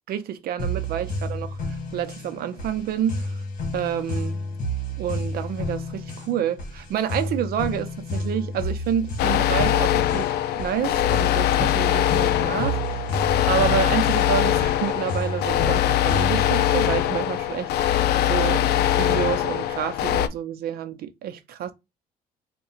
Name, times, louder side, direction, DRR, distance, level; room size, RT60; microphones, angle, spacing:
voice 1, 0.1-3.3 3.7-4.4 5.0-13.2 13.5-21.7, right 9 dB, 65° right, 0.6 m, -29 dB
sound 1, 0.6-16.6, left 1 dB, 50° left, 1.3 m, -31 dB
sound 2, 9.2-20.3, left 11 dB, 70° left, 0.4 m, -22 dB
3.6 x 2.3 x 4.0 m
cardioid pair, 110°, 17 cm